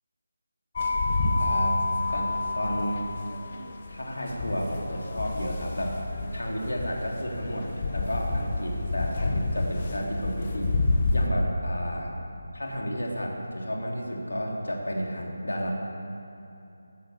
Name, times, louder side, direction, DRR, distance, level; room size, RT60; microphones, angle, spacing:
sound 1, 0.8-11.3, left 3 dB, 30° left, 1.4 m, -29 dB
voice 1, 1.4-1.8 2.1-3.1 3.9-5.9 6.3-10.7 11.1-12.1 12.5-15.7, equal, 65° left, -1 dB, 3.4 m, -32 dB
14.5 x 11.5 x 8.5 m, 2.8 s
figure-of-eight pair, 155°, 0 cm